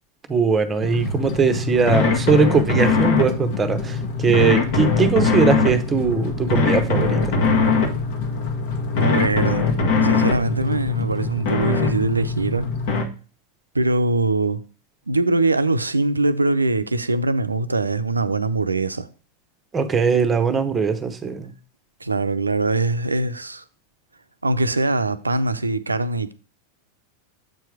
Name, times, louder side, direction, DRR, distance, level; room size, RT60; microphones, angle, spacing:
voice 1, 0.3-7.2 19.7-21.5, right 5 dB, 20° right, 1.0 m, -20 dB
sound 1, 0.8-13.0, left 4 dB, 50° left, 1.5 m, -22 dB
voice 2, 8.9-9.7 10.0-12.7 13.7-14.6 15.1-19.1 22.0-23.6 24.4-26.3, right 2 dB, 80° right, 0.6 m, -22 dB
7.7 x 4.7 x 4.7 m
figure-of-eight pair, 90°, 0 cm